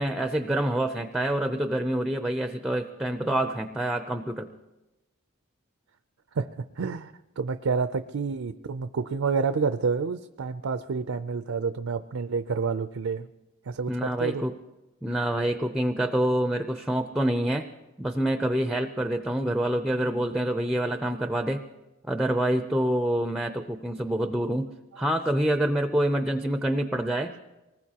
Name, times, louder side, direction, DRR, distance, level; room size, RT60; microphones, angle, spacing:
voice 1, 0.0-4.5 13.9-14.6 15.0-17.7 18.0-21.6 22.1-24.7 25.0-27.3, right 1 dB, 5° right, 7 dB, 0.5 m, -26 dB
voice 2, 6.8-13.3 13.7-14.5, right 5 dB, 75° right, 10 dB, 0.5 m, -29 dB
24.5 x 19.5 x 2.9 m, 1.0 s
head